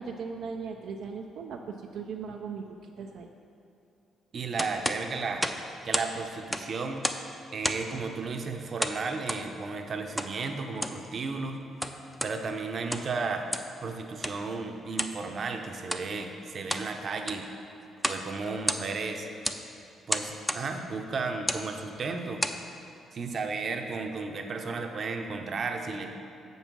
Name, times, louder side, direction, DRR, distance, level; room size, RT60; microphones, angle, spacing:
voice 1, 0.0-3.3, right 5 dB, 80° right, 2 dB, 0.4 m, -38 dB
voice 2, 4.3-5.5 5.8-7.1 7.5-11.6 12.2-13.5 13.8-17.5 18.1-19.3 20.1-22.4 23.1-26.2, right 4 dB, 50° right, 4 dB, 0.7 m, -34 dB
sound 1, 4.6-6.1 6.4-7.3 7.6-8.0 8.8-9.5 10.2-10.3 10.7-11.0 11.6-12.4 12.8-13.2 13.5-13.8 14.2-14.4 15.0-15.2 15.8-16.1 16.5-16.9 17.2-17.5 18.0-18.3 18.5-19.1 19.4-19.6 20.1-20.7 21.4-21.7 22.2-22.6, equal, 5° left, 0.5 m, -31 dB
7.0 x 5.5 x 6.1 m, 2.7 s
cardioid pair, 90°, 0 cm